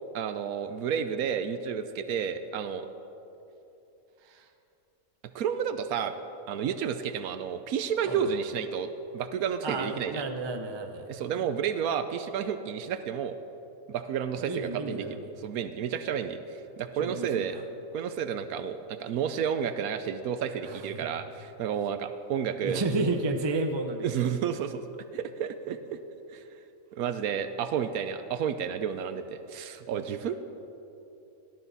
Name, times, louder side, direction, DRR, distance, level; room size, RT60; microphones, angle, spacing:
voice 1, 0.1-2.9 5.3-6.1 6.5-10.2 11.1-13.4 13.9-15.0 15.4-17.6 17.9-22.8 24.0-24.8 25.1-26.0 26.3-26.4 26.9-30.4, right 7 dB, 75° right, 10 dB, 1.1 m, -31 dB
voice 2, 9.6-11.0 14.4-15.3 17.0-17.6 20.6-21.1 22.6-24.1, right 3 dB, 30° right, 5 dB, 0.4 m, -32 dB
17.5 x 12.5 x 4.1 m, 3.0 s
omnidirectional pair, 1.6 m